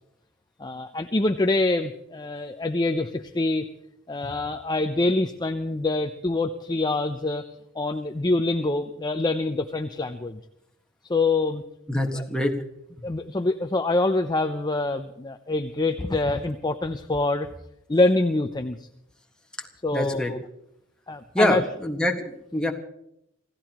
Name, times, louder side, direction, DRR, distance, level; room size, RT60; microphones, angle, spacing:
voice 1, 0.6-3.7 4.1-7.4 7.8-10.4 11.1-11.6 11.9-12.3 13.0-17.5 17.9-18.9 19.8-20.4 21.1-21.6, left 2 dB, 20° left, 7 dB, 0.6 m, -25 dB
voice 2, 11.9-12.5 19.9-20.3 21.3-22.7, left 1 dB, 5° left, 1 dB, 1.7 m, -25 dB
28.0 x 16.0 x 3.0 m, 0.83 s
head